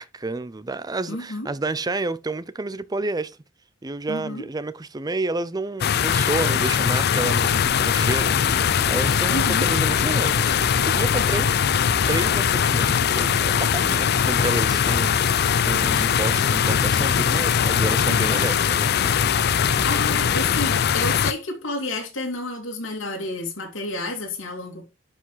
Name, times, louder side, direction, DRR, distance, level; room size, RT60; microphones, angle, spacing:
voice 1, 0.0-3.4 3.8-11.5 12.1-19.1, right 2 dB, 20° right, 0.5 m, -30 dB
voice 2, 1.1-1.5 4.1-4.4 9.3-9.7 18.0-18.4 19.8-24.9, left 2 dB, 75° left, 2.7 m, -30 dB
sound 1, 5.8-21.3, left 8 dB, 55° left, 0.5 m, -21 dB
sound 2, 7.4-20.6, right 1 dB, 70° right, 2.7 m, -36 dB
11.5 x 5.0 x 3.9 m
head